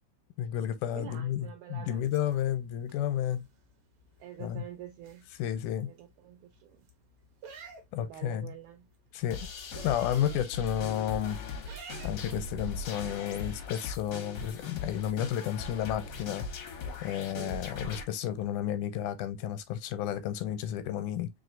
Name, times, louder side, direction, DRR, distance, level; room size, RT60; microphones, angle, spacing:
voice 1, 0.4-3.4 4.4-4.6 5.4-5.9 7.9-8.5 9.1-9.5 9.8-11.4 12.0-16.4 17.0-21.3, left 10 dB, 85° left, 2.1 m, -32 dB
voice 2, 0.9-2.6 4.2-5.3 5.9-6.9 7.9-8.9 17.3-17.7, right 11 dB, 75° right, 1.9 m, -47 dB
sound 1, 2.0-18.5, right 4 dB, 60° right, 1.7 m, -56 dB
sound 2, 9.3-18.0, left 4 dB, 70° left, 1.0 m, -39 dB
4.6 x 3.3 x 2.6 m
omnidirectional pair, 3.5 m